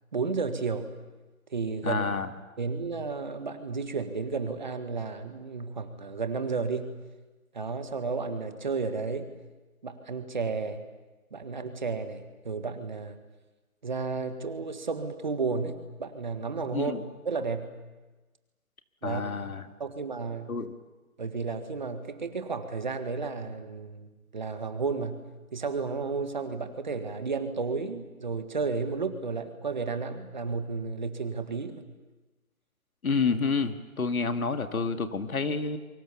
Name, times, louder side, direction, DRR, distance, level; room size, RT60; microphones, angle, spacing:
voice 1, 0.1-0.9 1.5-2.1 2.6-6.9 7.5-9.3 9.8-10.8 11.3-13.2 13.8-17.7 19.0-19.5 19.8-20.5 21.2-25.2 25.5-31.8, right 4 dB, 30° right, 8 dB, 1.6 m, -32 dB
voice 2, 1.8-2.3 16.7-17.0 19.0-19.6 20.5-20.7 33.0-35.8, left 4 dB, 75° left, 7 dB, 2.2 m, -29 dB
27.5 x 24.0 x 7.1 m, 1.2 s
hypercardioid pair, 175°, 43 cm